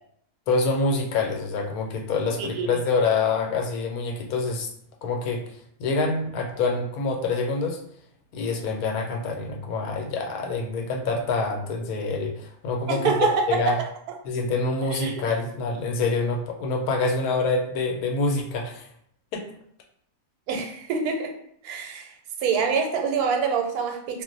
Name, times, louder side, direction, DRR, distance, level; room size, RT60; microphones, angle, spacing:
voice 1, 0.5-4.7 5.0-7.8 8.3-13.8 14.2-18.9 19.3-19.5, left 3 dB, 80° left, 2 dB, 1.1 m, -26 dB
voice 2, 12.9-13.8 15.0-15.1 20.5-21.3 21.6-22.1 22.4-24.2, right 5 dB, 85° right, 3 dB, 1.1 m, -25 dB
2.5 x 2.0 x 3.8 m, 0.68 s
omnidirectional pair, 1.6 m